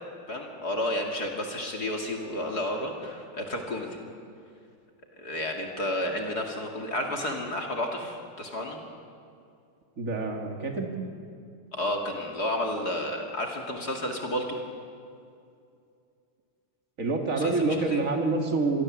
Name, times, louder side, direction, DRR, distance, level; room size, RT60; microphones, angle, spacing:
voice 1, 0.3-4.0 5.2-8.8 11.7-14.6 17.4-18.0, left 1 dB, 45° left, 1 dB, 2.8 m, -31 dB
voice 2, 10.0-10.9 17.0-18.8, right 3 dB, 35° right, 3 dB, 2.7 m, -27 dB
27.0 x 22.0 x 7.5 m, 2.5 s
omnidirectional pair, 2.4 m